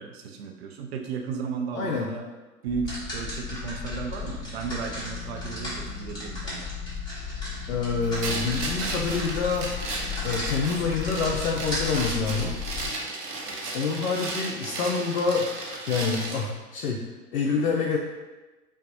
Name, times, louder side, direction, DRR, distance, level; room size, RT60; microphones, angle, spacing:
voice 1, 0.0-2.3 2.6-6.7, right 5 dB, 45° right, 3 dB, 0.6 m, -34 dB
voice 2, 1.7-2.1 7.7-9.7 10.2-12.6 13.7-17.0 17.3-18.0, left 4 dB, 60° left, -1 dB, 0.6 m, -27 dB
sound 1, 2.7-12.9, left 4 dB, 10° left, 1.3 m, -34 dB
sound 2, 8.2-16.5, right 2 dB, 85° right, 0.8 m, -34 dB
5.3 x 2.3 x 2.6 m, 1.2 s
figure-of-eight pair, 105°, 46 cm